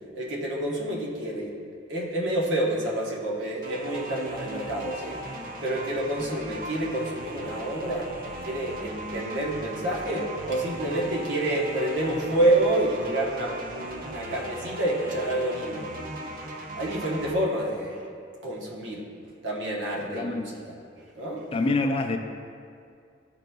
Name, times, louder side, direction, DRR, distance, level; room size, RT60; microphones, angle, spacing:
voice 1, 0.1-1.6 1.9-8.1 8.4-15.9 16.8-18.1 18.4-19.0 19.4-20.3 20.9-21.5, right 1 dB, 70° right, -3 dB, 1.1 m, -28 dB
sound 1, 3.6-17.3, right 1 dB, 50° right, 0.5 m, -38 dB
voice 2, 20.0-20.6 21.5-22.2, left 2 dB, 30° left, 5 dB, 0.3 m, -26 dB
11.5 x 3.9 x 2.3 m, 2.3 s
head